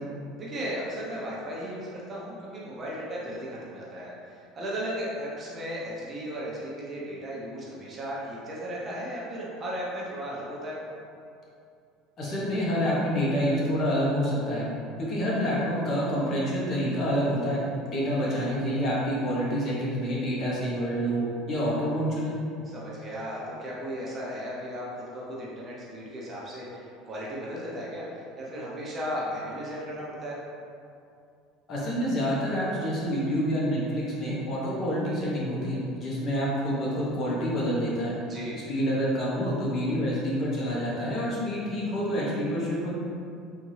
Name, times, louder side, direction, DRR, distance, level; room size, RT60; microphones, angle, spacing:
voice 1, 0.4-10.8 18.2-18.5 22.7-30.4 38.2-38.6, equal, 25° right, -6 dB, 0.7 m, -36 dB
voice 2, 12.2-14.7 15.0-17.6 17.9-22.4 31.7-38.1 38.7-42.9, equal, 35° left, -6 dB, 0.9 m, -27 dB
3.5 x 2.7 x 3.2 m, 2.5 s
cardioid pair, 135°, 0 cm